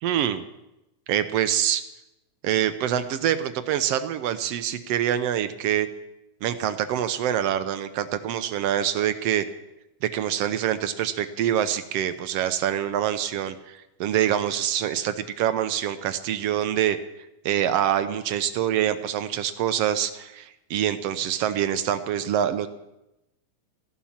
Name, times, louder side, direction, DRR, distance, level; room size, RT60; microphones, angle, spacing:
voice 1, 0.0-0.4 1.1-1.8 2.4-5.9 6.4-9.4 10.0-17.0 17.4-22.7, right 10 dB, 75° right, 11 dB, 1.5 m, -25 dB
15.0 x 11.5 x 7.3 m, 0.93 s
omnidirectional pair, 3.6 m